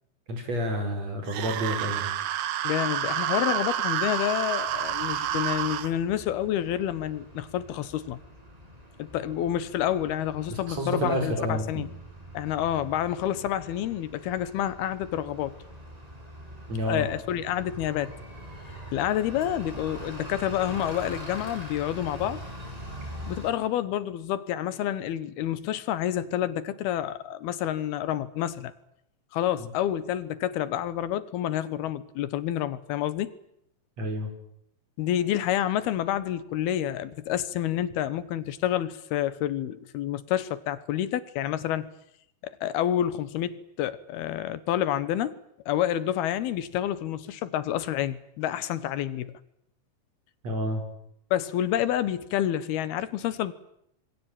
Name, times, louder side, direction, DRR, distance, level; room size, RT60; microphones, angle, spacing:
voice 1, 0.3-2.1 10.5-11.8 16.7-17.1 29.6-29.7 34.0-34.3 50.4-50.8, equal, 45° right, 5 dB, 6.0 m, -29 dB
sound 1, 1.3-5.9, right 11 dB, 80° right, 3.1 m, -29 dB
voice 2, 2.6-8.2 9.0-11.9 12.3-15.6 16.8-18.1 18.9-22.4 23.2-28.7 29.3-33.3 35.0-41.9 42.4-45.4 45.7-49.4 51.3-53.5, left 11 dB, 85° left, 14 dB, 3.2 m, -28 dB
Bus, 4.7-23.5, right 1 dB, 10° right, 6.2 m, -43 dB
27.0 x 22.0 x 9.0 m, 0.75 s
omnidirectional pair, 4.4 m